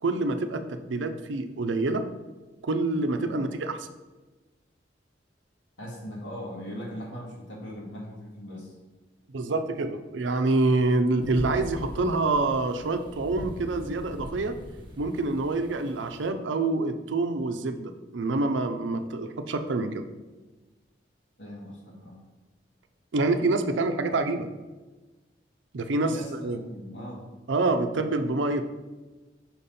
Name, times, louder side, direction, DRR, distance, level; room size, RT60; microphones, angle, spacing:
voice 1, 0.0-2.1 2.6-3.8 9.3-14.6 15.0-20.1 23.1-24.5 25.7-26.6 27.5-28.7, right 2 dB, 90° right, 8 dB, 0.5 m, -26 dB
voice 2, 5.8-8.7 21.4-22.2 26.0-27.2, equal, 85° left, -3 dB, 1.9 m, -39 dB
sound 1, 11.2-16.3, equal, 25° right, 1.1 m, -41 dB
5.8 x 4.2 x 5.3 m, 1.2 s
head